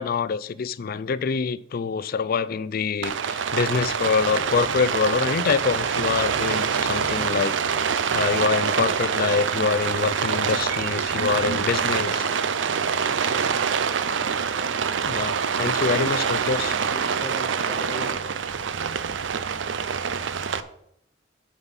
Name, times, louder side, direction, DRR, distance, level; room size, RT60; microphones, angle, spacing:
voice 1, 0.0-7.5 8.1-12.3 15.1-16.8, left 5 dB, 50° left, 0.4 m, -25 dB
Rain, 3.0-20.6, right 6 dB, 75° right, 0.5 m, -25 dB
voice 2, 13.3-13.9 15.6-18.1, equal, 10° left, 1.7 m, -41 dB
7.9 x 5.3 x 7.2 m
head